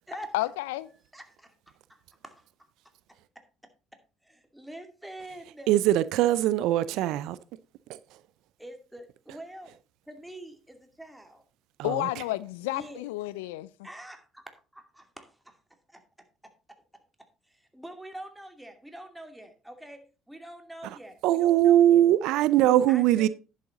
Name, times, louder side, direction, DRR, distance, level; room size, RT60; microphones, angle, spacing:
voice 1, 0.3-0.9 11.8-13.7, left 17 dB, 80° left, 0.4 m, -31 dB
voice 2, 1.1-2.5 3.9-5.7 8.6-9.8 10.1-11.4 12.7-13.0 13.8-15.6 15.9-16.0 16.4-16.8 17.4-22.0 22.9-23.3, right 1 dB, 5° right, 2.5 m, -46 dB
voice 3, 5.7-7.4 7.9-8.0 11.8-12.0 21.2-23.3, right 12 dB, 70° right, 0.4 m, -21 dB
10.5 x 7.6 x 3.9 m
hypercardioid pair, 55°, 0 cm